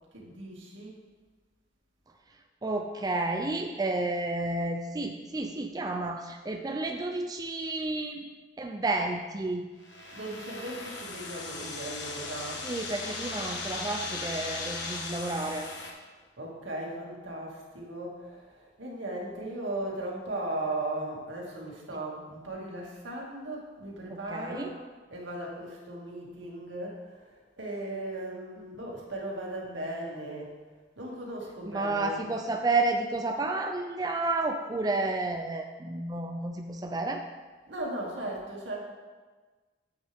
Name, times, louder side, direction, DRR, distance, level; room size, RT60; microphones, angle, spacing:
voice 1, 0.1-1.0 10.1-12.7 16.4-24.8 25.1-30.5 31.0-32.3 37.7-38.8, right 1 dB, 85° right, -3 dB, 2.3 m, -37 dB
voice 2, 2.6-8.3 8.6-9.6 12.6-15.7 24.1-24.7 31.7-37.2, right 2 dB, 20° right, 3 dB, 0.4 m, -31 dB
sound 1, 9.8-15.9, left 3 dB, 75° left, 1.2 m, -38 dB
10.0 x 8.0 x 3.5 m, 1.3 s
head